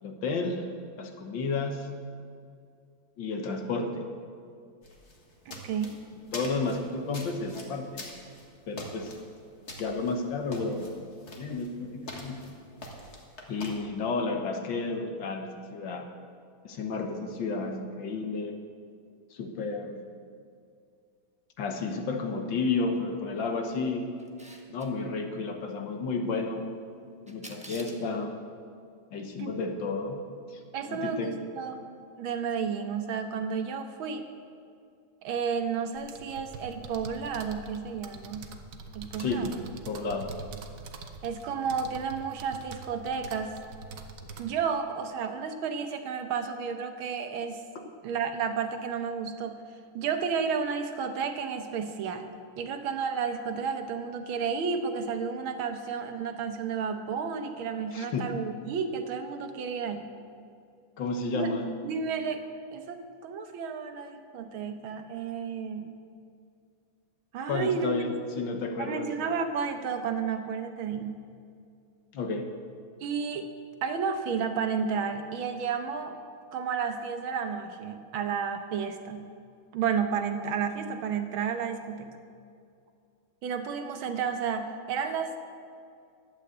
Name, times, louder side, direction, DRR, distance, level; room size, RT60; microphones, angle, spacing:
voice 1, 0.0-0.7 1.0-1.9 3.2-4.0 6.3-8.0 8.7-9.1 9.8-11.0 11.4-12.4 13.5-16.1 16.7-18.5 19.3-20.1 21.6-24.1 24.7-26.6 27.3-28.4 29.1-30.2 30.5-30.6 30.9-31.4 39.2-40.3 57.9-58.3 61.0-61.6 67.5-69.1 72.1-72.5, left 3 dB, 65° left, 4 dB, 1.8 m, -32 dB
sound 1, 4.8-13.7, left 1 dB, 35° left, 1.8 m, -45 dB
voice 2, 5.5-6.0 29.4-29.5 30.7-31.8 32.2-34.2 35.2-38.5 39.0-39.7 41.2-43.5 44.4-47.6 48.0-49.6 49.9-52.3 52.6-60.1 61.3-61.5 61.8-62.4 62.7-66.0 67.3-68.4 68.8-71.2 73.0-73.5 73.8-76.2 76.5-79.3 79.7-82.2 83.4-85.4, right 6 dB, 80° right, 7 dB, 1.8 m, -32 dB
Camera, 24.2-24.9 27.3-28.1, right 1 dB, 5° right, 0.6 m, -46 dB
sound 2, 36.0-44.4, right 4 dB, 55° right, 1.0 m, -44 dB
11.5 x 8.3 x 7.9 m, 2.3 s
omnidirectional pair, 2.2 m